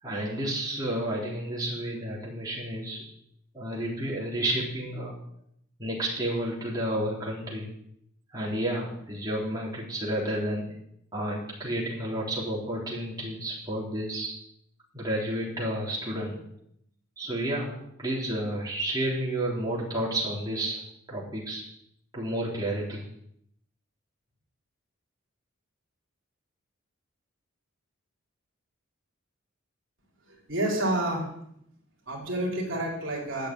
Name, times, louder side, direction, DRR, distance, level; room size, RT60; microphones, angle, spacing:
voice 1, 0.0-3.0 3.5-5.1 5.8-7.7 8.3-10.7 11.1-14.3 14.9-16.4 17.2-20.8 21.1-21.6 22.1-23.0, right 1 dB, 20° right, -5 dB, 3.5 m, -31 dB
voice 2, 30.3-31.3 32.1-33.5, right 1 dB, 60° right, -1 dB, 3.7 m, -29 dB
11.5 x 7.0 x 8.9 m, 0.72 s
head